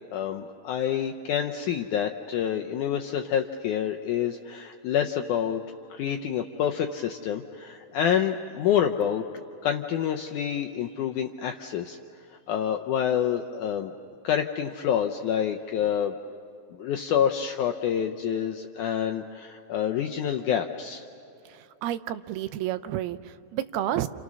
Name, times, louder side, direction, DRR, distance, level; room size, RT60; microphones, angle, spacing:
voice 1, 0.1-5.6 5.9-9.2 9.6-12.0 12.5-13.9 14.2-16.2 16.7-21.1, left 9 dB, 80° left, 3 dB, 1.8 m, -27 dB
voice 2, 21.5-24.1, right 12 dB, 85° right, 12 dB, 2.7 m, -31 dB
29.5 x 29.0 x 6.2 m, 2.7 s
omnidirectional pair, 4.4 m